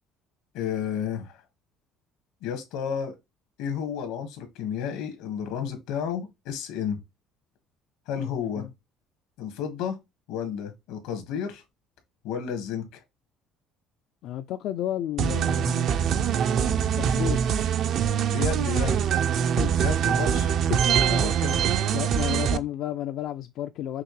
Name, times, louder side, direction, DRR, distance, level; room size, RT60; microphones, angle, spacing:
voice 1, 0.5-1.4 2.4-3.1 3.6-7.0 8.1-8.7 9.4-10.0 10.3-11.6 12.2-13.0 18.3-19.0 19.8-20.5 21.1-21.6, left 7 dB, 85° left, 1.6 m, -31 dB
voice 2, 14.2-15.9 17.0-17.4 19.6-19.7 20.7-20.8 21.9-24.0, left 12 dB, 60° left, 0.3 m, -31 dB
sound 1, 15.2-22.6, right 8 dB, 50° right, 0.4 m, -23 dB
5.9 x 2.8 x 3.1 m
cardioid pair, 145°, 0 cm